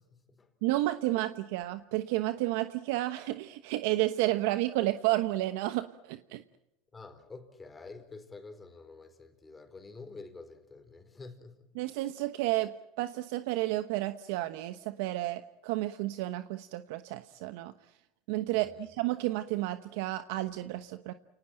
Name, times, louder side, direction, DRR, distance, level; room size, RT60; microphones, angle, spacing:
voice 1, 0.0-0.5 6.9-11.7 18.5-18.9, left 3 dB, 20° left, 4.3 m, -49 dB
voice 2, 0.6-6.4 11.8-12.7 13.0-17.7 18.3-21.1, right 17 dB, 70° right, 1.0 m, -31 dB
30.0 x 19.0 x 7.8 m
supercardioid pair, 105°, 0 cm